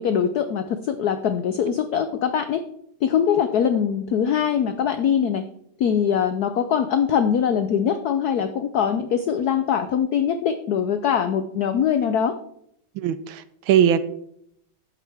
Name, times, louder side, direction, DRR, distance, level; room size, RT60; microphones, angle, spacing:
voice 1, 0.0-2.6 3.0-5.4 5.8-12.4, left 8 dB, 85° left, 9 dB, 0.8 m, -22 dB
voice 2, 12.9-14.0, right 9 dB, 75° right, 14 dB, 1.3 m, -20 dB
12.0 x 8.5 x 3.5 m, 0.71 s
omnidirectional pair, 2.4 m